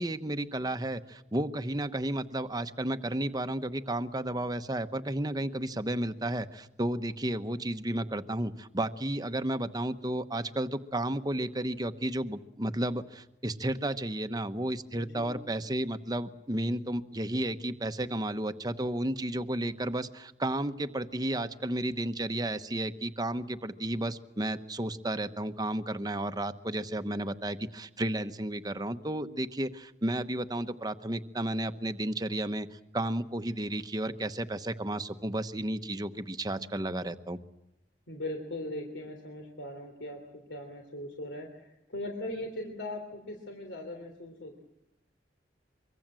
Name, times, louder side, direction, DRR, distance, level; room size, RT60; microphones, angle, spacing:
voice 1, 0.0-37.4, right 1 dB, 20° right, 9 dB, 1.0 m, -32 dB
voice 2, 14.9-15.5 38.1-44.6, left 1 dB, 80° left, 3 dB, 3.5 m, -40 dB
24.5 x 24.0 x 7.6 m, 0.86 s
head